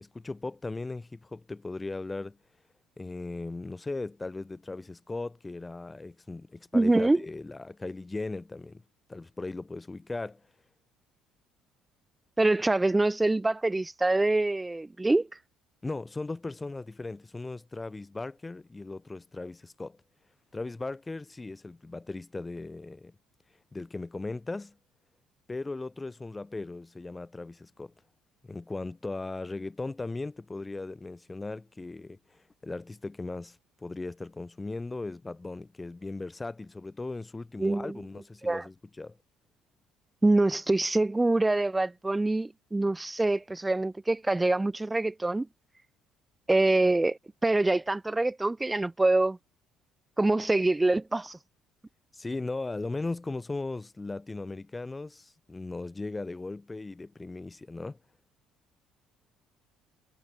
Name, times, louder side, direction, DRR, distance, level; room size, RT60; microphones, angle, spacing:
voice 1, 0.0-2.4 3.0-8.8 9.1-10.4 15.8-20.0 20.5-23.1 23.7-24.8 25.5-27.9 28.5-39.2 52.1-58.0, left 3 dB, 20° left, 2.1 m, -38 dB
voice 2, 6.7-7.2 12.4-15.3 37.6-38.0 38.4-38.6 40.2-45.5 46.5-49.4 50.2-51.4, right 2 dB, 15° right, 0.3 m, -25 dB
hypercardioid pair, 55°, 0 cm